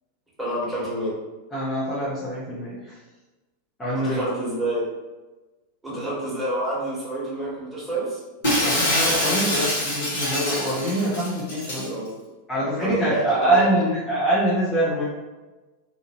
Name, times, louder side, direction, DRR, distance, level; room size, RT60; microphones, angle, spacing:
voice 1, 0.4-1.1 3.9-4.8 5.8-8.2 11.7-12.1 12.8-13.8, right 1 dB, 5° right, -9 dB, 1.3 m, -28 dB
voice 2, 1.5-2.9 3.8-4.2 8.6-11.8 12.5-15.0, right 1 dB, 15° left, -10 dB, 0.7 m, -24 dB
Shatter, 8.4-11.9, left 1 dB, 60° left, 1.1 m, -24 dB
2.6 x 2.5 x 2.9 m, 1.2 s
figure-of-eight pair, 90°, 0 cm